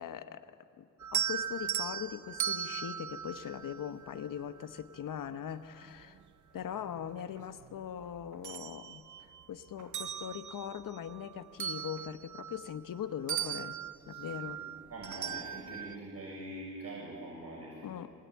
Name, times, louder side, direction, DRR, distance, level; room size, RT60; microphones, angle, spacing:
voice 1, 0.0-6.2 6.5-13.8 14.1-14.6 17.8-18.1, left 9 dB, 85° left, 10 dB, 1.1 m, -41 dB
sound 1, 1.0-4.4 6.0-6.1 6.6-7.8 8.2-9.4 9.8-13.0 13.3-16.0, right 9 dB, 65° right, 0.7 m, -38 dB
voice 2, 14.1-14.6 14.9-17.9, right 1 dB, 50° right, -4 dB, 7.3 m, -44 dB
25.0 x 20.0 x 9.5 m, 2.4 s
cardioid pair, 60°, 32 cm